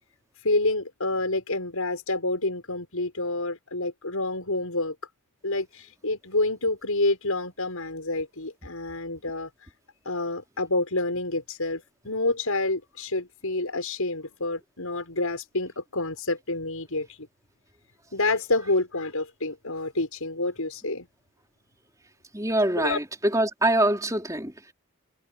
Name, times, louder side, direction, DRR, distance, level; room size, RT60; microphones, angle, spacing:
voice 1, 0.4-4.9 5.4-9.5 10.0-17.1 18.1-21.0 22.8-23.0, left 2 dB, 80° left, 6.6 m, -28 dB
voice 2, 22.3-23.0 23.3-24.7, right 1 dB, 15° right, 4.5 m, -24 dB
head